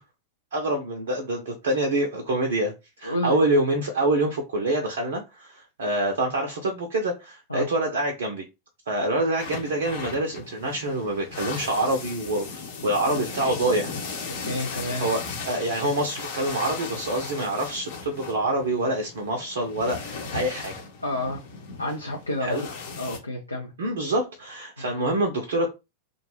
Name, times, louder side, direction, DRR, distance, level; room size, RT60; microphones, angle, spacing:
voice 1, 0.5-8.4 8.9-13.9 15.0-20.7 22.4-22.6 23.8-25.7, right 1 dB, 60° right, 0.5 m, -26 dB
voice 2, 3.0-3.4 7.5-7.7 14.4-15.1 21.0-21.4 21.8-22.7 23.0-23.7 24.8-24.9, left 1 dB, 80° left, 0.5 m, -30 dB
sound 1, 9.4-23.2, left 4 dB, 55° left, 0.8 m, -37 dB
2.4 x 2.2 x 3.1 m
figure-of-eight pair, 90°, 0 cm